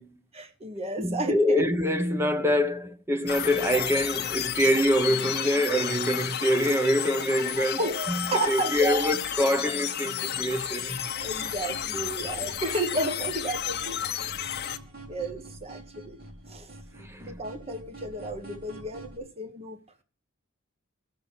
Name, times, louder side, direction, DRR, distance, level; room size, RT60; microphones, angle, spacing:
voice 1, 0.3-1.7 7.8-9.1 11.2-14.0 15.1-16.2 16.5-16.7 17.2-19.8, right 2 dB, 30° right, 1.3 m, -32 dB
voice 2, 1.0-7.8 8.1-11.1 17.0-17.4, equal, 10° right, 0.9 m, -25 dB
sound 1, 3.3-14.8, left 9 dB, 50° left, 1.0 m, -32 dB
sound 2, 11.2-19.2, right 2 dB, 50° right, 4.9 m, -47 dB
16.5 x 7.1 x 5.8 m
head